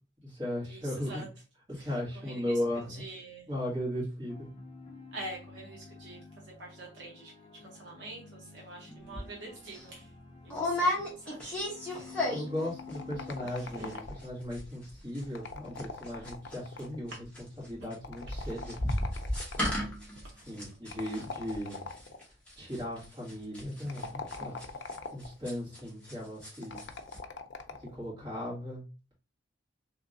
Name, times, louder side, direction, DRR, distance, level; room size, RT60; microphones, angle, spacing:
voice 1, 0.2-1.3 1.7-3.0 3.5-4.5 12.3-18.8 20.5-21.9 22.6-24.8 25.1-26.9 27.8-28.8, left 1 dB, 25° right, -6 dB, 1.9 m, -37 dB
voice 2, 2.9-3.5 5.1-6.2 6.6-10.1 10.4-10.9 11.2-11.6 11.9-12.1 13.6-13.9 20.3-20.4, right 2 dB, 65° right, -2 dB, 0.8 m, -45 dB
sound 1, 4.3-13.4, left 4 dB, 25° left, 0.6 m, -50 dB
sound 2, 9.1-9.3 9.7-9.8 10.5-12.7 12.9-13.3 13.6-13.7 13.9-14.3 14.5-26.1 26.4-26.9 27.1-27.2, left 1 dB, 5° left, 1.1 m, -34 dB
sound 3, 12.8-14.4 15.2-17.1 18.0-19.9 20.9-22.2 23.8-25.4 26.6-28.0, left 4 dB, 65° left, 0.4 m, -42 dB
3.4 x 2.9 x 2.5 m, 0.33 s
head